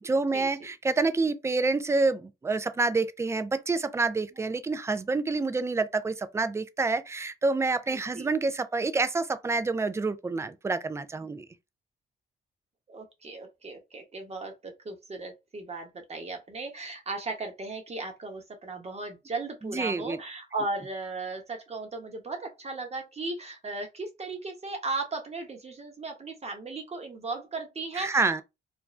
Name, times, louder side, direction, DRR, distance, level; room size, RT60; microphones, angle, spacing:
voice 1, 0.0-11.5 19.6-20.2 27.9-28.4, right 3 dB, 15° right, 0.4 m, -28 dB
voice 2, 7.9-8.3 12.9-28.4, right 3 dB, 30° right, 1.0 m, -36 dB
2.5 x 2.2 x 3.1 m
cardioid pair, 90°, 20 cm